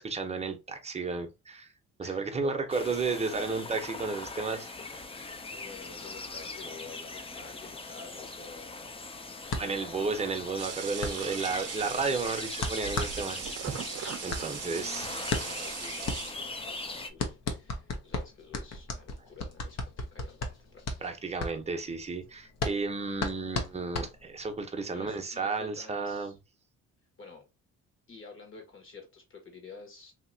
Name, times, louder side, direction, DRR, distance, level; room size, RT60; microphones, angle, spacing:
voice 1, 0.0-1.7 2.0-5.1 9.6-13.5 14.2-15.1 21.0-26.3, right 4 dB, 20° right, 0.7 m, -33 dB
voice 2, 2.0-2.5 5.5-9.0 9.4-10.0 13.3-13.5 14.4-21.1 24.8-26.4 27.2-27.5 28.1-30.1, left 4 dB, 45° left, 1.3 m, -50 dB
sound 1, 2.7-17.1, left 3 dB, 20° left, 0.5 m, -41 dB
sound 2, 9.5-24.6, left 3 dB, 60° left, 0.8 m, -36 dB
sound 3, 10.6-16.7, right 9 dB, 55° right, 0.6 m, -39 dB
2.9 x 2.8 x 2.6 m
cardioid pair, 90°, 30 cm